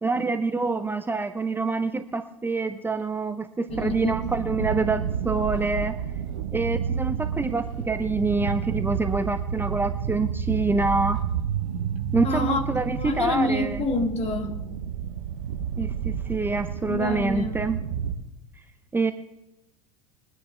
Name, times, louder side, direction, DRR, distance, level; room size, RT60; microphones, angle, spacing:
voice 1, 0.0-5.9 6.5-11.2 12.1-13.8 15.8-17.8 18.9-19.1, right 3 dB, 10° right, 0.7 m, -26 dB
voice 2, 3.7-4.3 4.6-4.7 12.0-12.6 13.0-14.6 16.9-17.6, left 3 dB, 35° left, 2.1 m, -28 dB
sound 1, 3.7-18.2, right 8 dB, 75° right, 1.1 m, -30 dB
22.5 x 9.7 x 3.4 m
hypercardioid pair, 85°, 17 cm